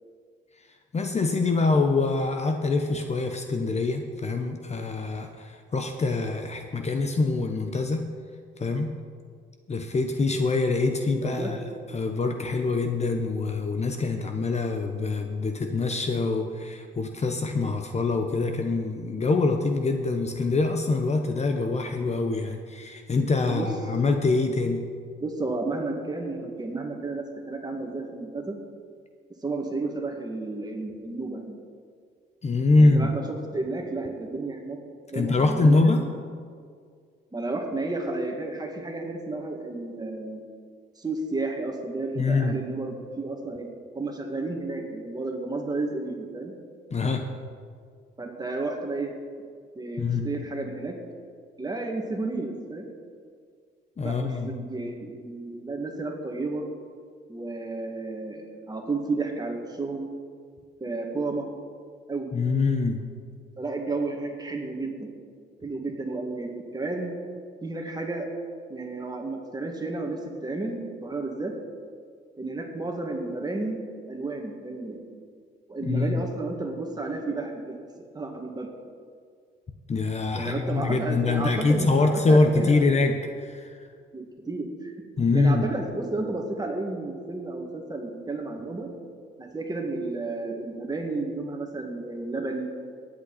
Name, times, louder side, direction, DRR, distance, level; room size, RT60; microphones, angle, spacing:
voice 1, 0.9-8.0 8.6-8.9 9.7-11.6 11.9-24.8 32.4-33.1 35.1-36.0 42.2-42.6 46.9-47.3 50.0-50.3 54.0-54.5 62.3-63.0 75.8-76.2 79.9-83.7 85.2-85.6, left 3 dB, 35° left, 5 dB, 1.0 m, -24 dB
voice 2, 25.2-28.6 29.4-31.6 32.8-34.8 35.1-35.8 37.3-40.4 41.0-46.5 48.2-49.1 49.8-50.9 51.6-52.9 54.0-56.6 57.3-60.1 60.8-61.5 62.1-62.3 63.6-65.1 65.6-67.2 67.6-68.3 68.7-71.5 72.4-73.8 74.1-75.2 75.7-77.8 78.1-78.7 80.3-82.9 84.1-85.0 85.3-88.9 89.4-92.7, right 3 dB, 20° right, 2 dB, 2.0 m, -32 dB
19.0 x 8.3 x 4.2 m, 2.1 s
cardioid pair, 90°, 20 cm